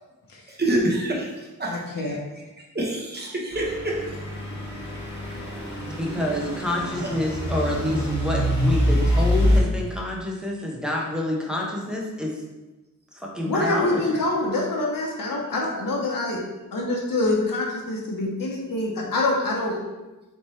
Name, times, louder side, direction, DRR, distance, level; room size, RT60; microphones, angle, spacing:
voice 1, 0.6-1.3 1.6-1.7 2.0-2.2 2.7-3.9 7.2-7.3, right 1 dB, 30° right, -3 dB, 0.9 m, -26 dB
voice 2, 1.7-2.2 13.4-16.4 16.7-19.7, left 2 dB, 85° left, -2 dB, 0.9 m, -25 dB
Truck / Idling, 3.5-9.6, equal, 35° left, 1.2 m, -25 dB
voice 3, 5.9-12.3 13.3-14.0, left 1 dB, ahead, -3 dB, 0.7 m, -28 dB
3.4 x 3.0 x 4.2 m, 1.1 s
wide cardioid pair, 115°, 33 cm